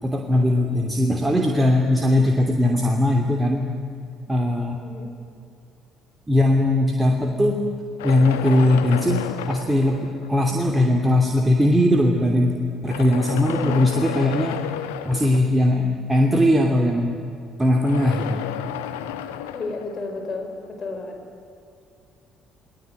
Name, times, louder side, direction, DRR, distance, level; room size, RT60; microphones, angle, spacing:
voice 1, 0.0-3.6 4.3-4.8 6.3-7.6 8.0-12.6 12.8-14.6 15.0-17.2 17.6-18.4, left 1 dB, 10° right, 2 dB, 2.9 m, -19 dB
voice 2, 4.8-5.1 13.5-14.0 19.5-21.2, left 3 dB, 40° left, 4 dB, 5.5 m, -32 dB
sound 1, 8.0-10.7 11.5-11.6 12.7-15.8 17.6-20.7, left 10 dB, 70° left, 1.3 m, -33 dB
29.5 x 20.0 x 9.4 m, 2.5 s
figure-of-eight pair, 50°, 0 cm